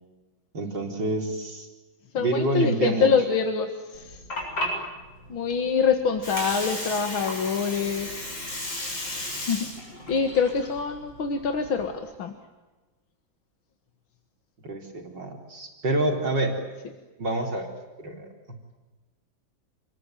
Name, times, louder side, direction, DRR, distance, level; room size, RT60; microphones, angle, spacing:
voice 1, 0.5-1.7 2.2-3.1 14.6-16.6 17.2-17.7 18.0-18.3, right 2 dB, 60° right, 2 dB, 4.7 m, -27 dB
voice 2, 2.1-4.2 5.3-8.4 9.5-9.7 10.1-12.3, left 6 dB, 85° left, 6 dB, 2.6 m, -25 dB
Water, 3.9-11.9, left 1 dB, 65° left, 8.3 m, -34 dB
28.5 x 21.5 x 9.2 m, 1.2 s
omnidirectional pair, 2.1 m